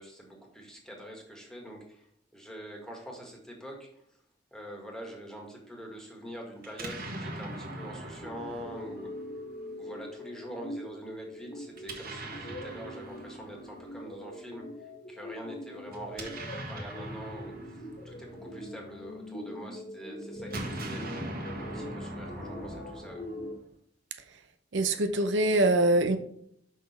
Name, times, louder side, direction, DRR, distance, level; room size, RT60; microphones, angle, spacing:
voice 1, 0.0-2.1 2.3-4.0 4.5-9.1 9.8-16.4 16.7-21.1 21.6-23.3, equal, 5° left, 1.8 m, -44 dB
Explosion, 6.6-9.7 11.7-14.0 15.9-19.3 20.3-23.7, right 1 dB, 55° right, 1.5 m, -41 dB
sound 1, 7.5-23.6, left 1 dB, 50° left, 1.7 m, -43 dB
voice 2, 24.7-26.2, right 2 dB, 80° right, 0.7 m, -24 dB
6.3 x 5.9 x 4.2 m
head